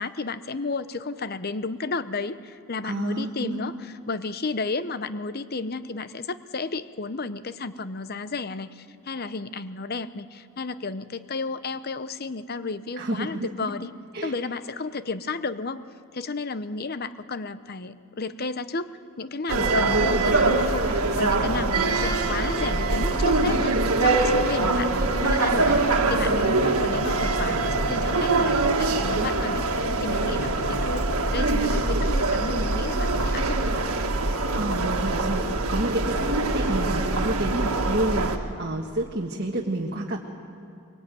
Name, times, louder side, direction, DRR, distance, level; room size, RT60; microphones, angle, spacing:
voice 1, 0.0-13.9 14.2-15.8 16.1-18.9 19.2-24.9 25.2-31.1 31.3-33.7, left 3 dB, 45° left, 13 dB, 0.8 m, -32 dB
voice 2, 2.8-3.7 13.0-13.7 14.1-14.3 34.5-40.2, right 1 dB, 45° right, -1 dB, 1.7 m, -29 dB
sound 1, 19.5-38.4, right 2 dB, 85° right, 1.8 m, -23 dB
sound 2, 20.8-21.7 23.6-27.1 27.4-27.8, left 1 dB, 15° left, 2.7 m, -45 dB
23.5 x 22.5 x 9.2 m, 2.4 s
head